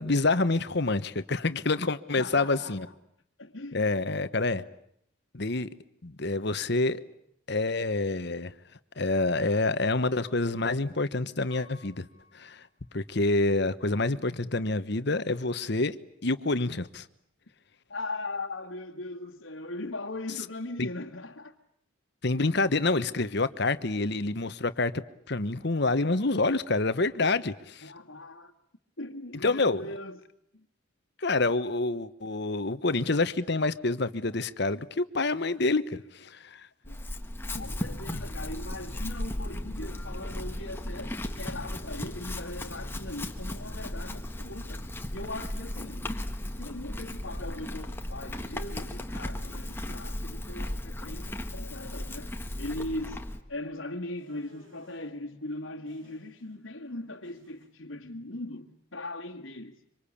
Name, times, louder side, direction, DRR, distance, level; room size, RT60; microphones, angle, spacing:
voice 1, 0.0-2.9 3.7-4.6 5.3-5.7 6.0-7.0 7.5-8.5 9.0-12.1 12.3-12.7 12.9-15.9 16.2-17.1 20.8-20.9 22.2-25.0 25.3-27.9 29.4-29.8 31.2-36.7 38.1-38.2, left 3 dB, 55° left, 1.2 m, -27 dB
voice 2, 2.2-2.9 3.4-3.9 17.9-21.6 27.8-28.5 29.0-30.2 30.5-30.7 36.9-37.1 37.5-44.9 45.1-46.1 46.6-52.3 52.6-53.2 53.5-59.8, left 2 dB, 75° left, 1.8 m, -39 dB
Piano, 11.5-13.5 14.0-14.1, left 4 dB, 25° right, 6.6 m, -58 dB
Chewing mastication / Livestock farm animals working animals, 36.8-53.4, left 1 dB, 10° left, 1.5 m, -36 dB
sound 1, 54.2-55.1 55.9-56.6 56.9-57.7, equal, 70° right, 6.5 m, -59 dB
26.0 x 25.5 x 8.6 m
head